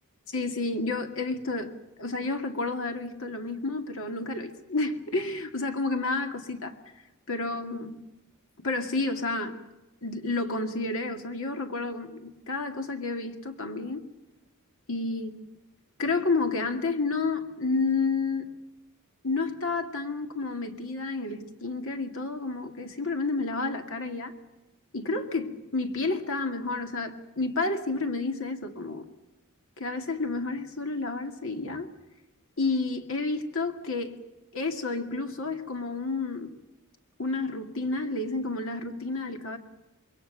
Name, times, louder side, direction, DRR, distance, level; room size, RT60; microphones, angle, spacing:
voice 1, 0.3-1.7 2.0-6.8 7.3-8.0 8.6-9.6 10.0-14.0 14.9-15.4 16.0-18.5 19.2-24.3 24.9-29.1 29.8-31.9 32.6-34.2 34.5-36.5 37.2-39.6, left 3 dB, 65° left, 6 dB, 2.2 m, -30 dB
26.0 x 22.5 x 6.7 m, 1.0 s
head